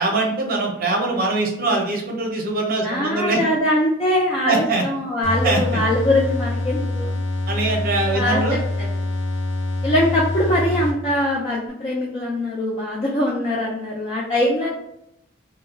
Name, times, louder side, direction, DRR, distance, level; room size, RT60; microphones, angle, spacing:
voice 1, 0.0-3.4 4.4-4.8 5.4-5.8 7.5-8.6, right 3 dB, 50° right, 1 dB, 0.6 m, -22 dB
voice 2, 2.8-7.2 8.1-8.9 9.8-14.7, left 1 dB, 30° left, -4 dB, 0.4 m, -22 dB
sound 1, 5.2-11.3, left 2 dB, 90° left, 0.6 m, -25 dB
2.2 x 2.1 x 3.3 m, 0.78 s
head